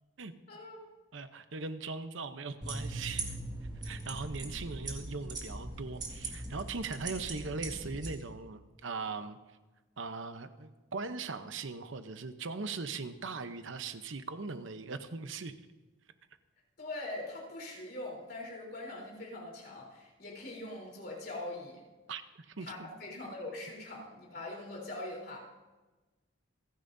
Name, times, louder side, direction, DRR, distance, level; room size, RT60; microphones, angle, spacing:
voice 1, 0.5-0.8 16.8-21.8 22.6-25.4, left 2 dB, 50° left, -2 dB, 3.7 m, -42 dB
voice 2, 1.1-3.4 3.8-9.4 10.0-15.5 22.1-22.9, right 4 dB, 70° right, 10 dB, 0.8 m, -40 dB
sound 1, 2.6-8.1, right 2 dB, 20° right, 1.9 m, -40 dB
27.5 x 10.5 x 2.7 m, 1.2 s
head